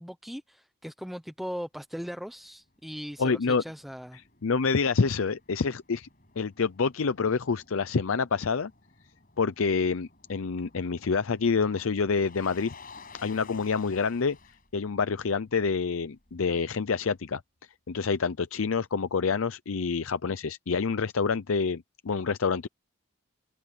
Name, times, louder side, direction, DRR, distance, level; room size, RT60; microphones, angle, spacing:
voice 1, 0.0-4.2, equal, ahead, 0.8 m, -39 dB
Motor vehicle (road), 2.3-17.2, left 4 dB, 40° left, 7.2 m, -55 dB
voice 2, 3.2-3.6 4.1-6.1 6.4-8.7 9.4-12.7 13.2-14.4 14.7-17.4 17.9-22.7, left 5 dB, 80° left, 0.6 m, -27 dB
head